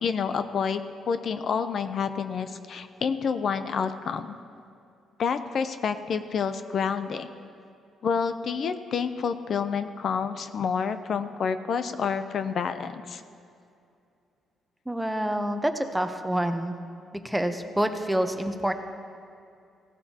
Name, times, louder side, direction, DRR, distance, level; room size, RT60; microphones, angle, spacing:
voice 1, 0.0-4.3 5.2-7.3 8.0-13.2, left 6 dB, 60° left, 10 dB, 0.5 m, -28 dB
voice 2, 14.9-16.7 17.2-18.7, right 1 dB, 5° right, 7 dB, 0.8 m, -27 dB
16.5 x 12.5 x 2.9 m, 2.5 s
cardioid pair, 90°, 0 cm